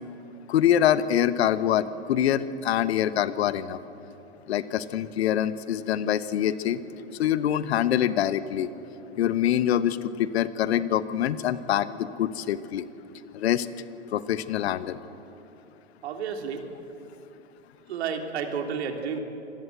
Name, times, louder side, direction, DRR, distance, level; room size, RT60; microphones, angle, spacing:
voice 1, 0.5-3.8 4.5-6.8 7.2-8.7 9.2-12.8 13.3-13.7 14.1-15.0, left 10 dB, 65° left, 14 dB, 1.1 m, -25 dB
voice 2, 16.0-16.6 17.9-19.2, right 6 dB, 65° right, 4 dB, 3.2 m, -31 dB
26.0 x 20.5 x 8.0 m, 2.9 s
hypercardioid pair, 100°, 35 cm